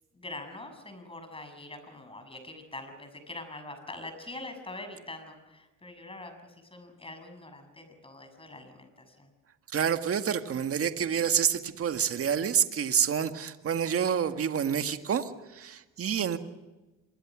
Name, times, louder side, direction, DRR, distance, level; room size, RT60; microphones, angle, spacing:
voice 1, 0.1-9.3, left 2 dB, 15° left, 7 dB, 7.0 m, -44 dB
voice 2, 9.7-16.4, right 8 dB, 45° right, 8 dB, 1.9 m, -28 dB
26.5 x 23.0 x 6.3 m, 1.1 s
cardioid pair, 95°, 32 cm